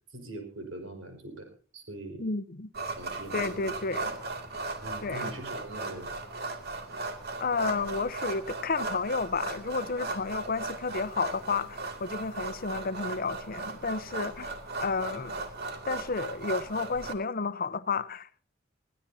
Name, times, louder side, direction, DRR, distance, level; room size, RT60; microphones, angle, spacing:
voice 1, 0.1-2.2 3.0-3.7 4.8-6.2, right 1 dB, 85° right, 5.2 m, -42 dB
voice 2, 2.2-2.7 3.3-4.0 5.0-5.3 7.4-15.4 15.9-18.3, left 4 dB, 50° left, 0.8 m, -31 dB
sound 1, 2.7-17.1, right 3 dB, 55° right, 2.5 m, -37 dB
22.0 x 16.0 x 2.8 m
head